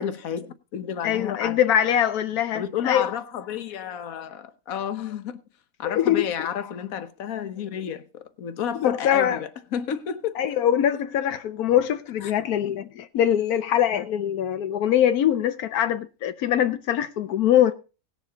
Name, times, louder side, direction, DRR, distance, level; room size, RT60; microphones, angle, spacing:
voice 1, 0.0-1.6 2.5-5.4 5.8-10.4 12.2-12.3, left 8 dB, 70° left, 1.4 m, -31 dB
voice 2, 1.0-3.1 5.8-6.2 8.8-9.4 10.4-17.7, left 10 dB, 90° left, 1.3 m, -23 dB
18.5 x 7.3 x 3.8 m
omnidirectional pair, 1.5 m